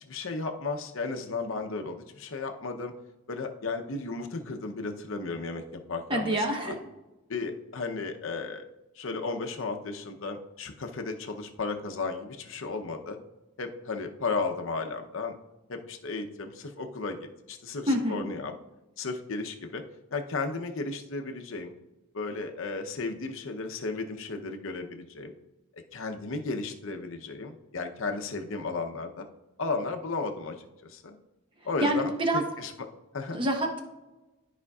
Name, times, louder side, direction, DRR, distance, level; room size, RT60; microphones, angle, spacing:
voice 1, 0.0-2.9 3.3-6.7 7.3-8.6 8.9-13.2 13.6-15.3 15.7-18.5 19.0-19.8 20.1-21.7 22.1-25.3 25.7-29.3 29.6-30.6 30.8-31.2 31.6-32.7 33.1-33.4, left 3 dB, 60° left, 5 dB, 0.7 m, -34 dB
voice 2, 6.1-6.8 17.9-18.2 31.8-32.4 33.3-33.8, right 1 dB, 25° right, 2 dB, 1.0 m, -27 dB
12.5 x 5.0 x 2.4 m, 1.0 s
head